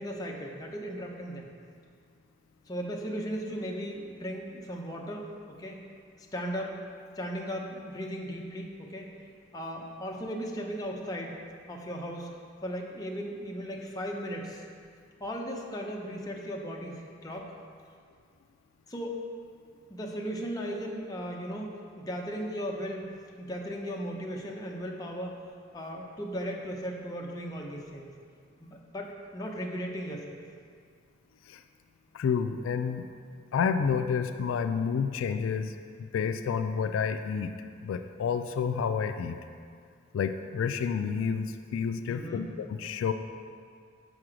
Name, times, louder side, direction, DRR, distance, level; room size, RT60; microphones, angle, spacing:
voice 1, 0.0-1.5 2.7-5.8 6.3-6.8 7.2-9.1 9.5-11.4 11.7-12.3 12.6-14.6 15.2-17.5 18.9-19.3 19.9-23.1 23.4-25.4 25.7-28.1 28.6-30.4 42.1-42.4, equal, 20° left, 0 dB, 0.6 m, -36 dB
voice 2, 32.1-33.1 33.5-35.7 36.1-37.5 37.8-39.4 40.1-43.1, left 6 dB, 85° left, 9 dB, 0.3 m, -29 dB
6.1 x 4.8 x 4.9 m, 2.2 s
head